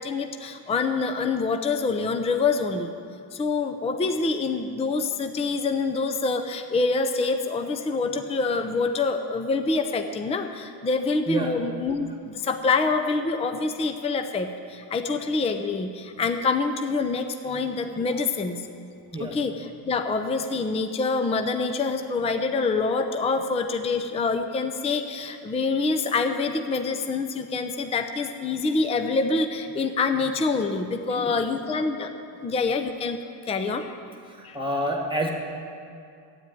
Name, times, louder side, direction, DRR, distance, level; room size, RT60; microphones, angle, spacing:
voice 1, 0.0-2.9 3.3-18.6 19.2-32.1 32.4-33.9 34.4-34.6, left 4 dB, 15° left, 7 dB, 0.6 m, -26 dB
voice 2, 11.3-11.6 19.1-19.4 31.1-31.4 34.4-35.3, right 1 dB, 10° right, 1 dB, 1.6 m, -28 dB
12.5 x 9.3 x 9.1 m, 2.4 s
cardioid pair, 130°, 47 cm